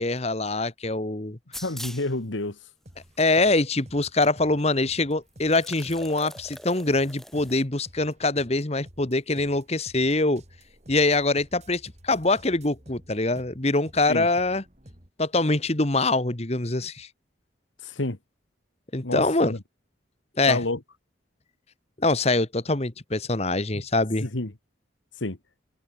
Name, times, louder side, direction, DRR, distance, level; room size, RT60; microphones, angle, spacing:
voice 1, 0.0-1.4 3.2-10.4 10.9-14.6 15.2-17.1 18.9-19.5 20.4-20.6 22.0-24.3, left 2 dB, 35° left, 1.5 m, -24 dB
sound 1, 1.5-2.1 3.0-3.1 4.2-4.3 4.6-4.7 5.4-7.6, left 1 dB, ahead, 2.4 m, -42 dB
voice 2, 1.6-2.6 14.1-14.3 17.8-18.2 19.0-19.6 20.5-20.8 24.2-24.5 25.2-25.4, left 2 dB, 90° left, 1.9 m, -29 dB
sound 2, 2.8-15.1, equal, 35° right, 6.3 m, -51 dB
head